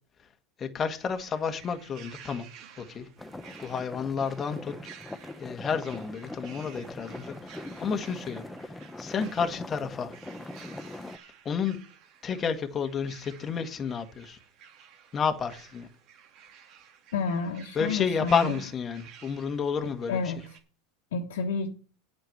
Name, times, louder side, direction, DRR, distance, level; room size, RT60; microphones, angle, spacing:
voice 1, 0.6-2.5 2.8-3.1 3.6-4.7 5.1-5.2 5.4-10.1 11.4-11.8 12.2-14.4 15.1-15.9 17.7-20.3, left 6 dB, 30° left, 1.6 m, -31 dB
sound 1, 1.0-20.6, right 8 dB, 55° right, 2.7 m, -52 dB
sound 2, 3.2-11.2, left 1 dB, 10° left, 0.9 m, -42 dB
voice 2, 17.1-18.6 20.1-20.4 21.1-21.7, left 4 dB, 85° left, 1.6 m, -30 dB
8.9 x 7.0 x 7.9 m
hypercardioid pair, 110°, 0 cm